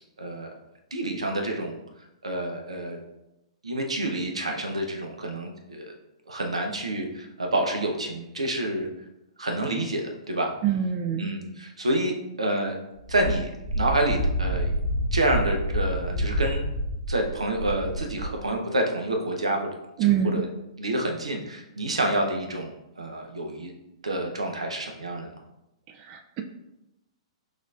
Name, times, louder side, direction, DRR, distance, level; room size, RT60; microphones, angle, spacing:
voice 1, 0.2-0.5 0.9-1.8 2.2-3.0 3.6-5.9 6.3-8.9 9.4-10.5 11.2-12.8 13.1-14.7 15.1-16.6 17.1-19.7 20.0-20.5 20.8-23.7 24.0-25.3, right 1 dB, 85° right, 3 dB, 0.7 m, -28 dB
voice 2, 10.6-11.3 20.0-20.4 26.1-26.4, right 9 dB, 35° right, 5 dB, 0.4 m, -24 dB
Wind, 13.0-18.4, equal, 15° right, 1.4 m, -28 dB
6.2 x 2.6 x 2.4 m, 0.92 s
hypercardioid pair, 115°, 3 cm